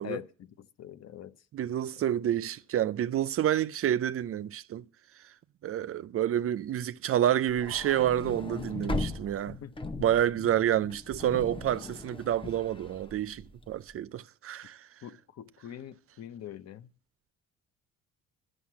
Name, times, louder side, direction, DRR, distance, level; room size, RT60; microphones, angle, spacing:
voice 1, 0.0-1.3 9.6-9.7 15.0-16.9, left 11 dB, 55° left, 0.7 m, -43 dB
voice 2, 1.5-4.8 5.6-9.6 10.0-14.9, right 11 dB, 50° right, 0.4 m, -29 dB
sound 1, 7.5-13.8, left 2 dB, 15° left, 0.7 m, -38 dB
11.0 x 6.5 x 7.4 m
cardioid pair, 90°, 30 cm